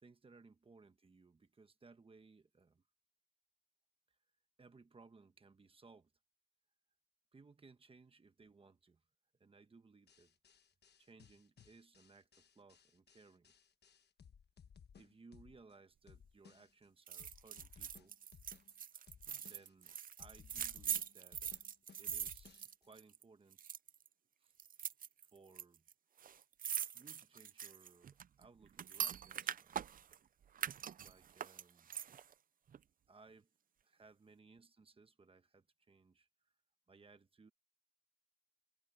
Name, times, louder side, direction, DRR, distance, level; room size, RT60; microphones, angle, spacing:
voice 1, 0.0-2.8 4.1-4.2 4.6-6.1 7.3-9.0 9.4-10.3 11.0-13.5 15.0-18.1 19.4-21.6 22.0-23.6 24.4-24.5 25.2-25.8 26.9-29.9 31.0-31.9 33.1-33.5 33.8-36.3 36.9-37.5, right 4 dB, 30° right, 1.1 m, -63 dB
sound 1, 10.1-15.7 16.1-16.9 17.2-18.7 19.1-19.9 20.2-22.9, left 7 dB, 75° left, 1.3 m, -62 dB
sound 2, 17.1-23.2 23.5-24.1 24.6-25.6 25.9-26.0 26.2-30.2 30.6-32.3 32.7-32.8, right 8 dB, 55° right, 0.4 m, -43 dB
wide cardioid pair, 180°, 17 cm